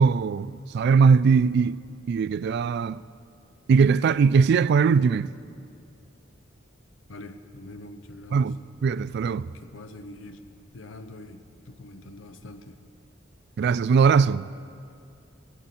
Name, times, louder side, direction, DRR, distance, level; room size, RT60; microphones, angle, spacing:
voice 1, 0.0-1.8 2.1-3.0 3.7-5.3 8.3-8.6 8.8-9.5 13.6-14.5, right 5 dB, 55° right, 0.3 m, -20 dB
voice 2, 7.1-8.5 9.5-10.5 10.7-12.8, left 2 dB, 70° left, 0.8 m, -44 dB
16.5 x 16.5 x 4.3 m
head